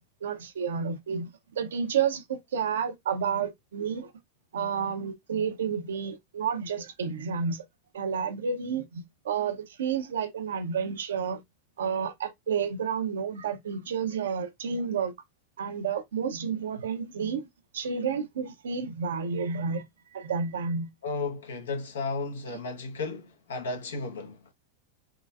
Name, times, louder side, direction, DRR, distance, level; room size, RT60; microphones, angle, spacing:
voice 1, 0.2-4.1 4.5-7.6 7.9-11.4 11.8-15.1 15.6-17.5 17.7-19.8 20.1-20.9, right 6 dB, 80° right, 0.7 m, -30 dB
voice 2, 21.0-24.4, left 3 dB, 80° left, 1.1 m, -34 dB
3.8 x 3.0 x 2.4 m
hypercardioid pair, 100°, 0 cm